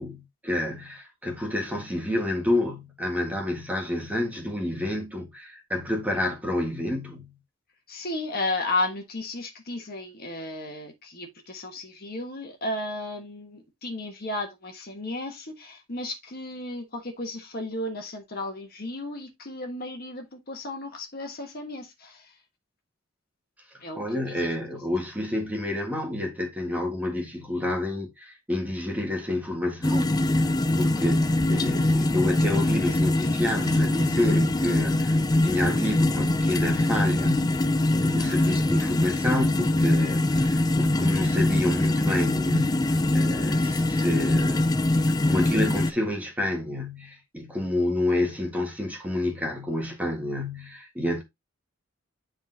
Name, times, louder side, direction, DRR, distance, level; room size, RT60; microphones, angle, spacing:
voice 1, 0.0-7.3 23.9-30.5 30.8-44.7 45.0-51.2, left 1 dB, 10° right, 1.6 m, -29 dB
voice 2, 7.9-22.3 23.8-24.0 24.4-24.5, left 2 dB, 50° left, 1.4 m, -34 dB
sound 1, 29.8-45.9, left 1 dB, 20° left, 0.4 m, -23 dB
10.0 x 3.8 x 2.8 m
head